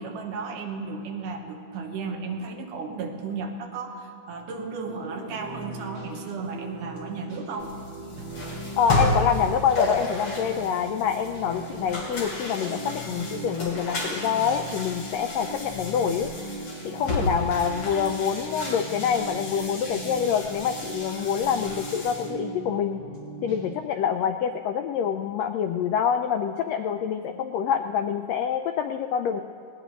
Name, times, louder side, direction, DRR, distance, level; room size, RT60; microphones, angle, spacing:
voice 1, 0.0-7.7 8.2-8.3, right 4 dB, 90° right, 3 dB, 2.7 m, -34 dB
sound 1, 4.9-23.8, right 2 dB, 40° right, 2.9 m, -39 dB
sound 2, 7.6-22.3, left 2 dB, 50° left, 3.8 m, -32 dB
voice 2, 8.8-16.3 16.8-23.0 23.4-29.4, left 8 dB, 90° left, 6 dB, 1.4 m, -26 dB
19.5 x 18.5 x 3.1 m, 2.3 s
omnidirectional pair, 3.6 m